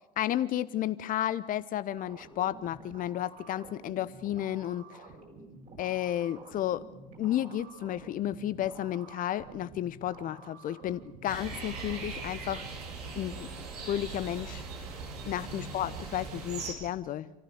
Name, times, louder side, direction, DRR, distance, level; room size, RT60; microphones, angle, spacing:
voice 1, 0.2-5.0 5.8-6.8 7.2-12.6 13.2-13.5 13.9-14.6 15.3-17.3, left 12 dB, 40° left, 16 dB, 0.8 m, -32 dB
sound 1, 2.0-12.0, right 3 dB, 45° right, 6.3 m, -50 dB
sound 2, 11.3-16.7, right 4 dB, 70° right, 3.5 m, -40 dB
27.5 x 15.0 x 7.0 m, 1.1 s
figure-of-eight pair, 65°, 20 cm